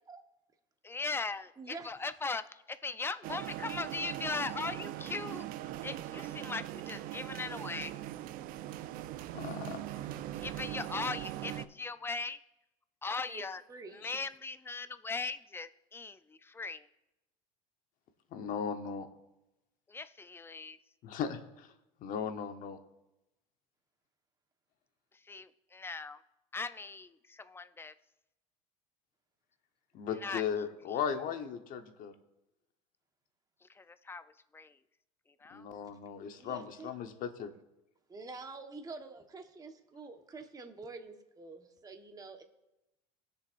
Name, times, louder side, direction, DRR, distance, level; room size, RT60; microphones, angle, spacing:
voice 1, 0.8-5.5 5.8-7.9 10.3-12.4 13.0-13.6 13.9-16.9 19.9-20.8 25.1-26.2 26.5-27.9 30.1-30.4 30.9-31.0 33.6-34.8 35.4-35.7, left 4 dB, 15° left, 13 dB, 0.5 m, -39 dB
voice 2, 1.6-1.9 13.3-13.4 13.7-14.0 36.3-36.9 38.1-42.4, right 3 dB, 20° right, 4 dB, 1.3 m, -47 dB
sound 1, 3.2-11.7, right 14 dB, 60° right, 0.5 m, -40 dB
voice 3, 9.3-10.0 18.3-19.1 21.0-21.7 22.0-22.8 29.9-32.1 35.5-37.5, left 7 dB, 55° left, 7 dB, 1.1 m, -37 dB
18.0 x 6.8 x 2.6 m, 0.95 s
supercardioid pair, 90°, 17 cm